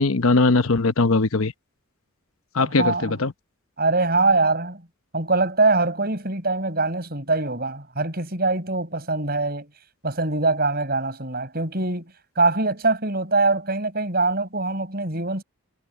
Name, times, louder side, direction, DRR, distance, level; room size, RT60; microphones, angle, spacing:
voice 1, 0.0-1.5 2.5-3.3, left 3 dB, 75° left, 0.9 m, -20 dB
voice 2, 2.6-3.1 3.8-4.8 5.1-9.7 10.0-12.1 12.4-15.4, right 3 dB, 45° right, 5.5 m, -23 dB
head